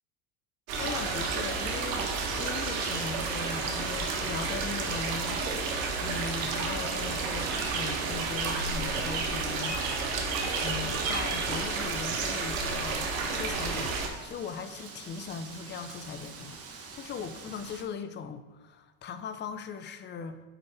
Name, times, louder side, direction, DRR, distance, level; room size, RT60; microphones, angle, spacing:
sound 1, 0.7-14.1, right 4 dB, 80° right, 1.1 m, -31 dB
voice 1, 0.8-2.1 2.4-5.5 6.0-9.8 10.6-20.4, left 5 dB, 25° left, 10 dB, 0.5 m, -39 dB
Wind, 1.7-17.8, right 4 dB, 35° right, 1.2 m, -49 dB
4.9 x 4.3 x 4.7 m, 1.3 s
hypercardioid pair, 90°, 40 cm